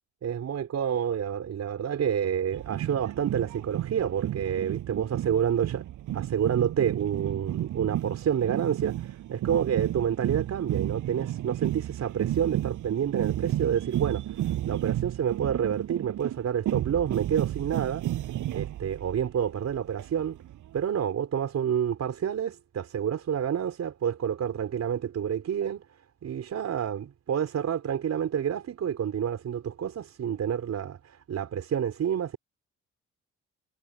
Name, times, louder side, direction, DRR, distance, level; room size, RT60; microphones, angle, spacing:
voice 1, 0.2-5.8 6.1-18.0 18.5-20.4 20.7-25.8 26.2-32.4, right 8 dB, 60° right, 5.5 m, -29 dB
sound 1, 2.5-20.8, right 13 dB, 80° right, 7.6 m, -32 dB
cardioid pair, 90°, 30 cm